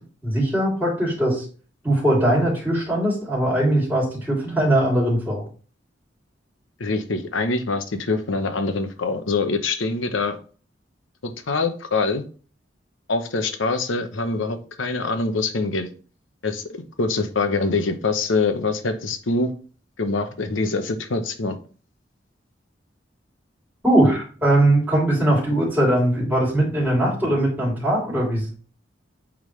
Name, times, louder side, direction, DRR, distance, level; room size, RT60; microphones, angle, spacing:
voice 1, 0.2-1.4 1.8-5.4 23.8-28.5, right 1 dB, 10° right, -6 dB, 3.2 m, -20 dB
voice 2, 6.8-10.4 11.2-12.2 13.1-15.9 16.4-16.7 17.0-19.5 20.0-21.6, left 3 dB, 85° left, 8 dB, 0.9 m, -24 dB
8.6 x 3.7 x 3.2 m, 0.39 s
head